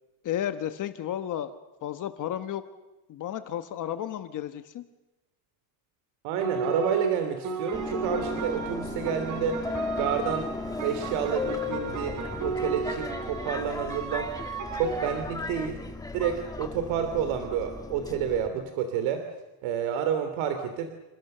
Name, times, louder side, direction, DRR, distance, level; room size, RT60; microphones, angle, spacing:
voice 1, 0.2-1.5 1.8-2.6 3.1-4.8, left 11 dB, 40° left, 10 dB, 1.1 m, -32 dB
voice 2, 6.2-9.6 10.0-10.5 10.8-14.3 14.7-15.8 16.1-19.3 19.6-20.9, right 8 dB, 75° right, 7 dB, 3.0 m, -29 dB
sound 1, 6.4-15.2, right 5 dB, 40° right, 3.5 m, -35 dB
Subway metro underground, 7.7-18.5, left 3 dB, 5° left, 1.3 m, -36 dB
29.0 x 27.5 x 6.7 m, 1.1 s
cardioid pair, 180°, 48 cm